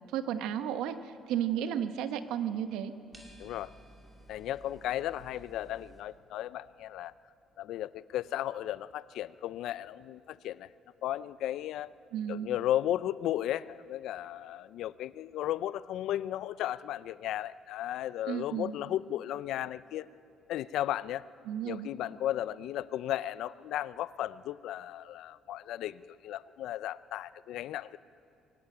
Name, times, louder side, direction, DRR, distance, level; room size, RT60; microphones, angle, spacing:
voice 1, 0.1-2.9 12.1-12.5 18.3-18.7 21.4-21.9, right 9 dB, 85° right, 9 dB, 1.1 m, -33 dB
sound 1, 3.1-6.0, right 1 dB, 10° right, 2.5 m, -55 dB
voice 2, 3.4-3.7 4.3-7.1 7.6-10.7 11.0-11.9 12.3-20.1 20.5-21.2 21.6-28.0, left 12 dB, 65° left, 17 dB, 0.5 m, -35 dB
22.0 x 17.5 x 9.2 m, 2.6 s
cardioid pair, 170°, 0 cm